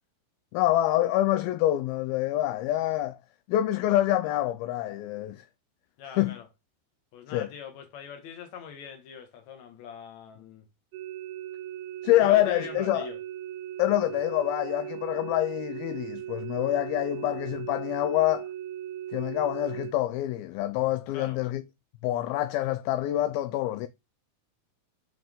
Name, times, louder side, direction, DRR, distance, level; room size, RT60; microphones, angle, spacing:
voice 1, 0.5-3.2 3.5-5.4 6.2-6.3 7.3-7.5 12.0-13.1 13.8-18.5 19.1-21.6 22.0-23.9, left 14 dB, 80° left, 2.3 m, -26 dB
voice 2, 6.0-6.5 7.1-10.6 12.2-13.2 21.1-21.4, left 7 dB, 55° left, 2.6 m, -42 dB
sound 1, 10.9-19.9, right 12 dB, 80° right, 2.4 m, -38 dB
7.3 x 5.9 x 3.7 m
omnidirectional pair, 4.6 m